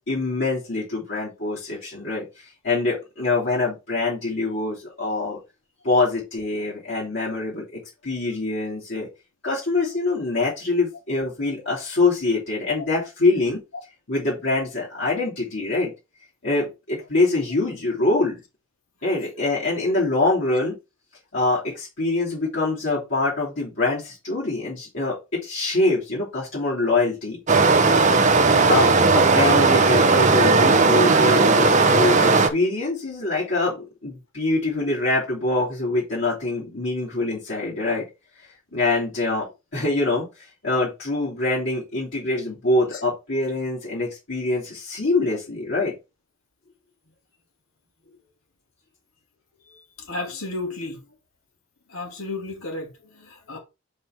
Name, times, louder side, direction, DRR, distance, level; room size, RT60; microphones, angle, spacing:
voice 1, 0.1-2.3 2.6-5.4 5.8-9.1 9.4-13.6 14.1-15.9 16.4-18.4 19.0-20.8 21.3-27.4 28.7-38.0 38.7-45.9, left 2 dB, 60° left, 3.3 m, -24 dB
Stream, 27.5-32.5, right 3 dB, 35° right, 0.8 m, -16 dB
voice 2, 49.7-51.0 51.9-53.6, left 2 dB, 85° left, 2.5 m, -33 dB
5.4 x 5.1 x 4.5 m
head